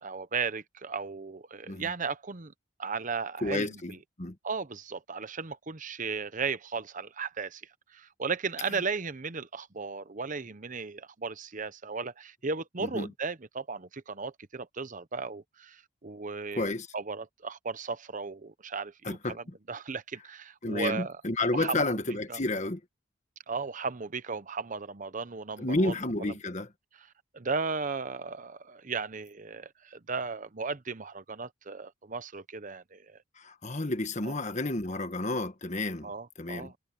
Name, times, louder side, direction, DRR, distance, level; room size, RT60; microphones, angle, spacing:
voice 1, 0.0-2.5 2.8-4.0 4.4-7.6 7.9-21.2 21.5-22.0 22.3-22.4 23.5-26.4 26.9-27.1 27.3-33.2 34.2-34.4 36.0-36.8, right 4 dB, 40° right, 0.8 m, -36 dB
voice 2, 3.4-4.3 12.9-13.1 16.6-16.9 19.0-19.4 20.6-22.8 25.6-26.7 33.4-36.1 36.4-36.7, left 2 dB, 35° left, 1.5 m, -31 dB
head